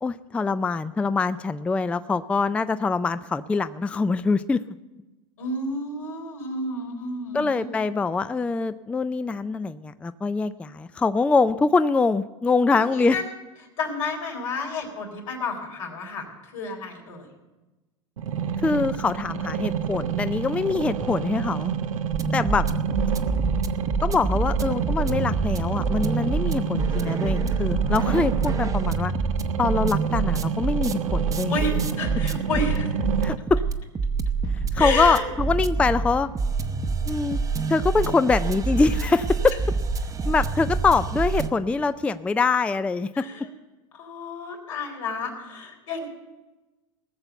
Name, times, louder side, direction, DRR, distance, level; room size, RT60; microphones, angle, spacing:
voice 1, 0.0-4.6 7.3-13.2 18.6-21.7 22.3-22.7 24.0-29.1 29.6-31.6 33.2-33.6 34.7-36.3 37.1-37.4 37.7-39.5 40.3-43.3, left 4 dB, 5° left, 13 dB, 0.3 m, -24 dB
voice 2, 5.4-7.7 12.7-13.3 13.8-17.3 31.5-32.9 34.7-35.3 43.1-43.5 43.9-46.1, left 3 dB, 80° left, 1 dB, 4.0 m, -31 dB
sound 1, 18.2-33.3, right 7 dB, 85° right, 0.8 m, -29 dB
sound 2, 22.1-41.5, right 4 dB, 20° right, 0.8 m, -27 dB
19.0 x 6.9 x 6.8 m, 1.1 s
hypercardioid pair, 100°, 17 cm